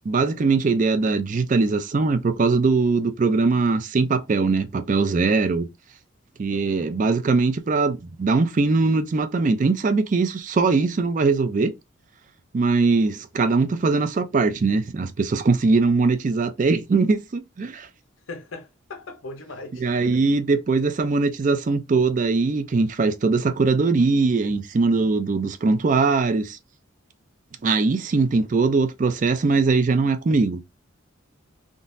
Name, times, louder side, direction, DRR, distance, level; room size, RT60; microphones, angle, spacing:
voice 1, 0.1-5.7 6.4-11.7 12.5-17.9 19.8-26.6 27.6-30.6, right 4 dB, 40° right, 0.4 m, -21 dB
voice 2, 6.5-6.9 18.3-19.9, left 3 dB, 75° left, 0.7 m, -39 dB
3.7 x 2.4 x 2.6 m
head